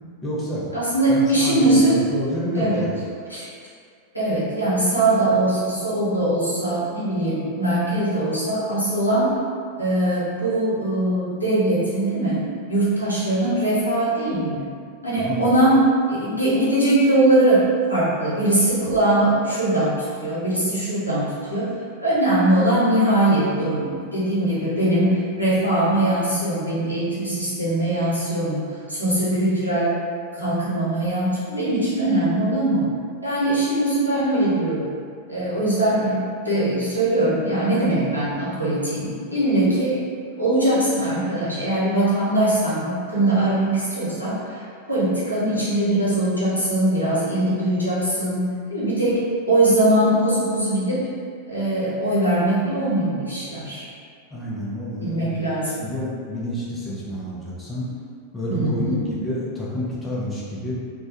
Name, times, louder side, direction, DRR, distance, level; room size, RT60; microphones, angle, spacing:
voice 1, 0.2-0.7 1.1-3.0 15.2-15.4 54.3-55.3 55.8-57.9 58.3-60.7, left 1 dB, 15° left, -7 dB, 0.5 m, -28 dB
voice 2, 0.7-2.0 2.5-2.9 3.3-3.5 4.1-9.4 9.8-12.4 12.7-14.7 15.0-15.8 16.1-21.7 22.0-30.0 30.4-32.9 33.2-34.9 35.3-40.0 40.4-51.1 51.5-53.8 55.0-55.8 58.5-59.0, right 1 dB, 85° left, -10 dB, 0.7 m, -21 dB
2.2 x 2.1 x 2.8 m, 2.2 s
figure-of-eight pair, 90°, 0 cm